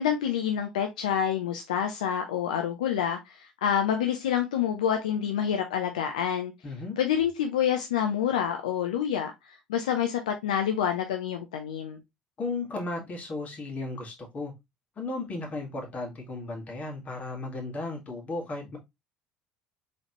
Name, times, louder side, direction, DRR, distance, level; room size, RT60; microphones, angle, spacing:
voice 1, 0.0-6.5 7.0-12.0, left 9 dB, 75° left, 0.5 m, -27 dB
voice 2, 6.6-7.0 12.4-14.5 15.0-18.8, left 2 dB, 35° left, 1.7 m, -35 dB
3.9 x 3.2 x 2.9 m
figure-of-eight pair, 60°, 4 cm